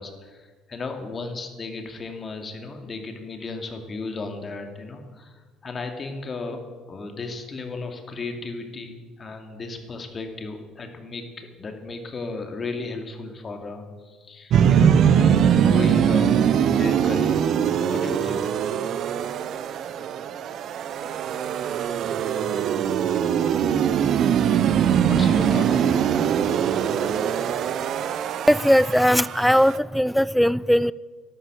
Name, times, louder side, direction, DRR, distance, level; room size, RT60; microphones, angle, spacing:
voice 1, 0.0-6.6 6.9-17.6 17.9-18.5 25.0-26.1, left 3 dB, 35° left, 2.6 m, -35 dB
sound 1, 14.5-29.8, right 8 dB, 60° right, 0.7 m, -22 dB
voice 2, 28.5-30.9, equal, ahead, 0.4 m, -19 dB
12.0 x 11.5 x 7.7 m
hypercardioid pair, 60°, 0 cm